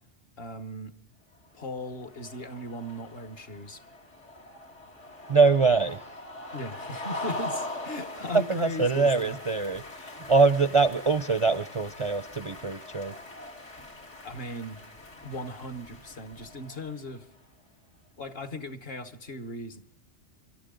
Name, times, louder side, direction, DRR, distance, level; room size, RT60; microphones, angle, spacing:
voice 1, 0.4-0.9 1.5-3.8 6.5-9.4 13.8-13.9 14.2-14.8 15.2-17.3 18.2-19.8, left 1 dB, 55° left, 8 dB, 1.4 m, -38 dB
sound 1, 1.6-17.2, left 1 dB, 75° left, 2.6 m, -42 dB
voice 2, 5.3-6.0 8.5-13.1, right 4 dB, 40° right, 11 dB, 0.4 m, -23 dB
26.5 x 12.5 x 3.8 m, 0.77 s
omnidirectional pair, 1.2 m